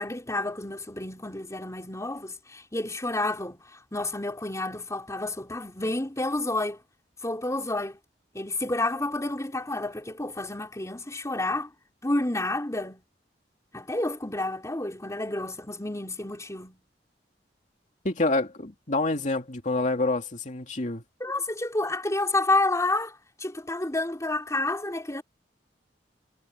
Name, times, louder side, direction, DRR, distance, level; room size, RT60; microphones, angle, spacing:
voice 1, 0.0-6.8 7.2-8.0 8.3-11.7 12.0-13.0 13.7-16.8 21.2-25.2, left 2 dB, 20° left, 4.0 m, -30 dB
voice 2, 18.0-21.0, left 2 dB, 45° left, 2.5 m, -27 dB
head